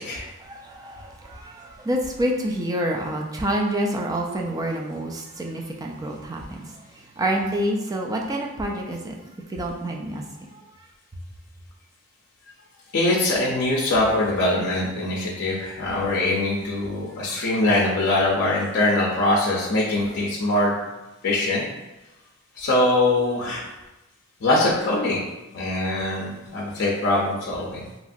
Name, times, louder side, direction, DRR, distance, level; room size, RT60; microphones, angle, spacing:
voice 1, 0.4-6.7 7.2-9.2 9.5-10.2, right 1 dB, 15° right, 1 dB, 0.3 m, -27 dB
voice 2, 12.9-20.8 21.2-21.6 22.6-23.7 24.4-25.2 25.5-27.8, left 2 dB, 50° left, -4 dB, 0.5 m, -22 dB
2.8 x 2.4 x 2.5 m, 1.0 s
head